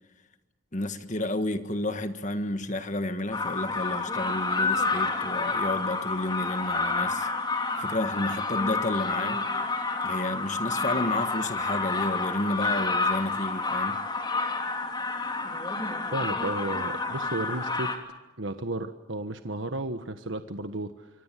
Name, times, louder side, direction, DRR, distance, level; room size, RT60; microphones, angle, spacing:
voice 1, 0.7-7.3 7.8-9.4 10.0-14.0, left 1 dB, 35° left, 1.6 m, -31 dB
sound 1, 3.3-18.0, left 3 dB, 20° left, 3.3 m, -29 dB
voice 2, 16.1-17.9 18.4-21.1, right 2 dB, 70° right, 1.4 m, -33 dB
26.0 x 25.5 x 7.6 m
head